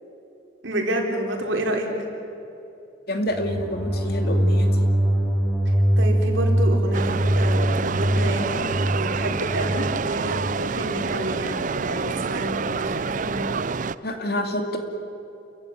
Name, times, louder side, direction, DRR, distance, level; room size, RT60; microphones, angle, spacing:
voice 1, 0.6-1.9 5.7-13.5, right 1 dB, 75° right, 1 dB, 4.1 m, -29 dB
voice 2, 3.1-4.9 14.0-14.8, left 1 dB, 55° left, 5 dB, 2.4 m, -27 dB
sound 1, 3.3-10.6, right 1 dB, ahead, 4.8 m, -22 dB
sound 2, 6.9-14.0, right 5 dB, 40° right, 0.5 m, -28 dB
28.5 x 15.0 x 9.8 m, 2.8 s
head